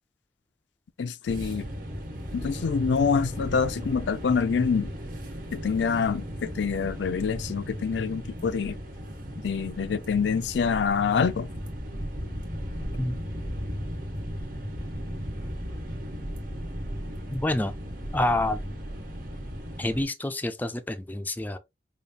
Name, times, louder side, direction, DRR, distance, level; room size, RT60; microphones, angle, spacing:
voice 1, 1.0-1.7 2.3-4.9 5.5-8.8 9.4-11.5, left 5 dB, 80° left, 0.4 m, -26 dB
sound 1, 1.3-20.0, equal, 50° right, 1.4 m, -36 dB
voice 2, 17.3-17.7 18.1-18.6 19.8-21.6, left 1 dB, 10° left, 0.3 m, -27 dB
5.0 x 2.3 x 2.7 m
head